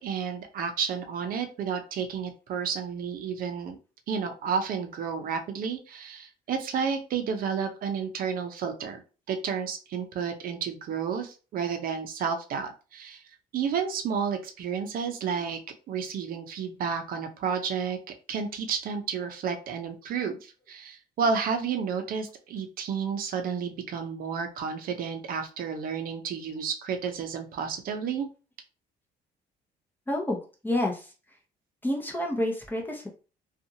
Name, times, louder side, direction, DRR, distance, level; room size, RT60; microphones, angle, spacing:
voice 1, 0.0-3.8 4.1-9.0 9.3-13.2 13.5-15.6 15.9-18.0 18.3-28.3, right 6 dB, 60° right, 6 dB, 0.6 m, -31 dB
voice 2, 30.1-30.4 30.6-31.1 31.8-33.1, left 1 dB, 10° left, 0 dB, 0.7 m, -28 dB
2.6 x 2.4 x 2.7 m, 0.34 s
cardioid pair, 110°, 17 cm